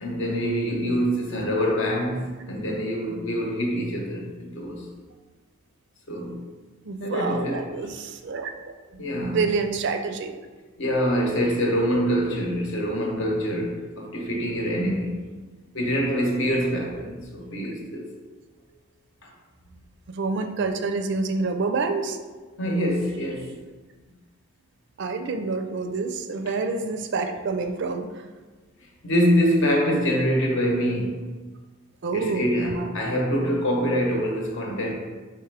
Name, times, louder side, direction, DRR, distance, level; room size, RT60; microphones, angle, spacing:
voice 1, 0.0-4.9 6.1-6.4 7.0-7.7 9.0-9.4 10.8-15.3 15.7-18.1 22.6-23.5 29.0-31.3 32.1-34.9, equal, 60° left, 0.9 m, -25 dB
voice 2, 6.8-8.7 9.1-10.3 20.1-22.2 25.0-28.2 32.0-32.9, right 4 dB, 55° right, 0.4 m, -28 dB
4.7 x 3.4 x 3.3 m
head